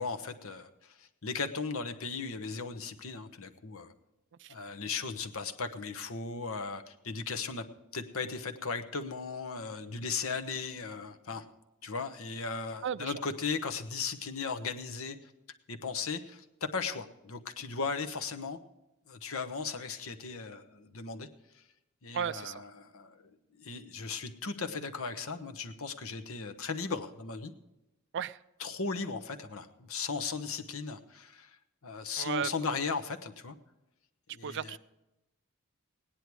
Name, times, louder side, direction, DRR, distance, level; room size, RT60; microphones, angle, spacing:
voice 1, 0.0-3.9 4.5-7.6 7.9-11.4 11.8-15.3 15.7-18.6 19.1-21.3 21.5-21.6 22.0-27.5 28.6-31.6 31.8-33.5 34.3-34.8, left 4 dB, 65° left, 7 dB, 1.1 m, -37 dB
voice 2, 12.8-13.2 22.1-22.6 28.1-28.4 32.2-32.8 34.4-34.8, right 8 dB, 55° right, 16 dB, 0.4 m, -35 dB
17.5 x 10.0 x 4.7 m, 0.94 s
head